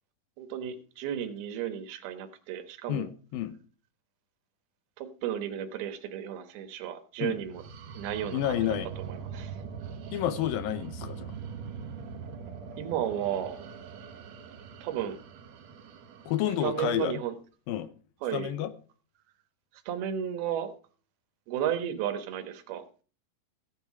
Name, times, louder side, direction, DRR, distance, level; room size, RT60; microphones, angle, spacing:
voice 1, 0.4-3.1 5.0-7.6 7.9-8.7 9.1-9.6 12.8-13.6 14.8-15.2 16.6-17.3 18.2-18.7 19.9-20.7 21.5-22.8, right 10 dB, 80° right, 8 dB, 3.1 m, -33 dB
voice 2, 2.9-3.5 7.2-7.3 8.3-8.9 10.1-11.3 16.3-17.2 17.7-17.9 18.3-18.7, left 11 dB, 75° left, 13 dB, 2.5 m, -30 dB
sound 1, 7.3-17.0, right 6 dB, 60° right, 2.1 m, -42 dB
15.5 x 8.3 x 4.8 m, 0.39 s
omnidirectional pair, 4.5 m